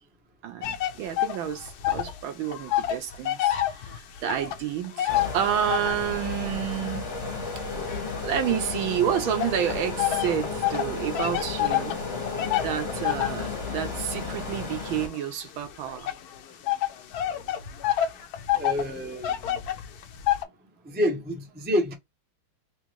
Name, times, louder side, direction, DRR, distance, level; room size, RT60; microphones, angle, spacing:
voice 1, 0.4-7.0 7.6-7.7 8.2-12.0 12.6-16.1, right 10 dB, 75° right, 1.4 m, -30 dB
sound 1, 0.6-2.2 2.4-6.1 6.7-8.8 9.4-20.4, left 12 dB, 75° left, 0.8 m, -29 dB
sound 2, 5.1-15.1, left 4 dB, 35° left, 1.1 m, -33 dB
voice 2, 18.5-19.6 20.9-21.9, equal, 15° right, 0.4 m, -28 dB
3.6 x 3.0 x 2.9 m
omnidirectional pair, 2.4 m